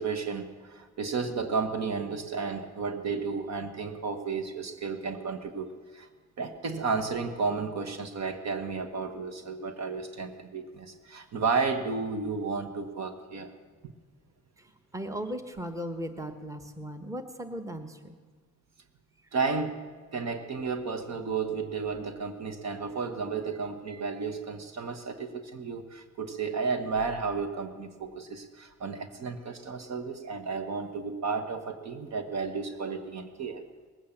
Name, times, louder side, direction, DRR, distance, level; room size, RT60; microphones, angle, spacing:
voice 1, 0.0-6.1 6.4-13.5 13.8-13.9 19.3-19.9 20.1-33.6, right 4 dB, 60° right, 7 dB, 1.3 m, -32 dB
voice 2, 14.6-18.2, equal, 10° right, 8 dB, 1.1 m, -37 dB
19.5 x 8.5 x 7.2 m, 1.4 s
cardioid pair, 90°, 30 cm